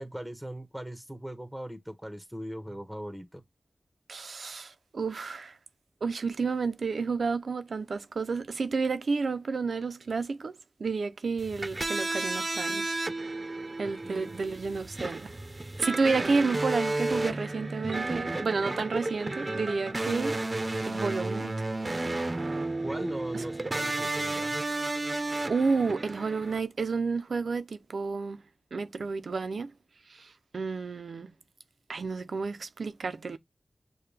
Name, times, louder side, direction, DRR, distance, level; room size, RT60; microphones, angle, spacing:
voice 1, 0.0-3.4 14.0-14.3 22.8-24.6, equal, 5° right, 1.0 m, -39 dB
voice 2, 4.1-5.6 6.0-10.5 10.8-12.9 13.8-15.3 15.8-20.4 20.9-21.5 23.3-23.4 25.5-28.4 28.7-29.7 30.1-31.3 31.9-33.4, right 4 dB, 85° right, 0.5 m, -30 dB
sound 1, 11.4-26.6, right 2 dB, 45° right, 0.6 m, -32 dB
6.6 x 2.2 x 3.2 m
cardioid pair, 50°, 0 cm